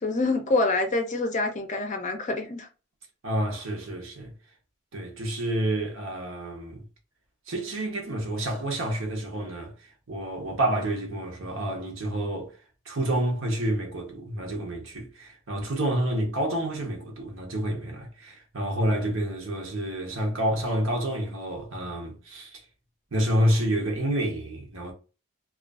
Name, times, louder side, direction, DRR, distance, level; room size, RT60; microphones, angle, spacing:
voice 1, 0.0-2.7, left 2 dB, 35° left, 0.5 m, -26 dB
voice 2, 3.2-4.3 4.9-6.8 7.5-12.6 12.8-22.6 23.1-24.9, right 1 dB, 65° right, 0.8 m, -29 dB
2.4 x 2.3 x 2.3 m
head